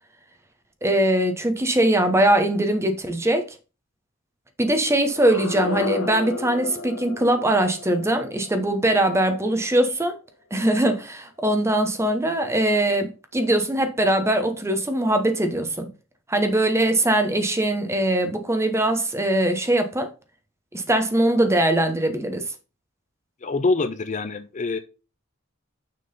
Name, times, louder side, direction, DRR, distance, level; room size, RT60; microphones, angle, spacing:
voice 1, 0.8-3.5 4.6-10.2 10.5-15.9 16.3-20.1 20.7-22.5, right 1 dB, 15° right, 0.9 m, -21 dB
sound 1, 5.0-10.0, left 2 dB, 75° left, 1.3 m, -34 dB
voice 2, 23.4-24.8, left 3 dB, 35° left, 0.5 m, -25 dB
6.5 x 3.8 x 5.3 m
head